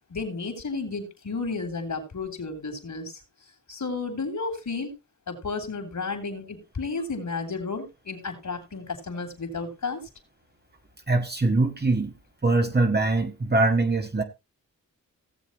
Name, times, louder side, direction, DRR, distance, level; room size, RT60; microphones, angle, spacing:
voice 1, 0.1-3.2 3.7-4.9 5.3-10.0, left 4 dB, 55° left, 3.4 m, -32 dB
voice 2, 11.1-12.1 12.4-14.2, right 2 dB, 30° right, 1.6 m, -22 dB
16.5 x 7.3 x 3.0 m
cardioid pair, 55°, 35 cm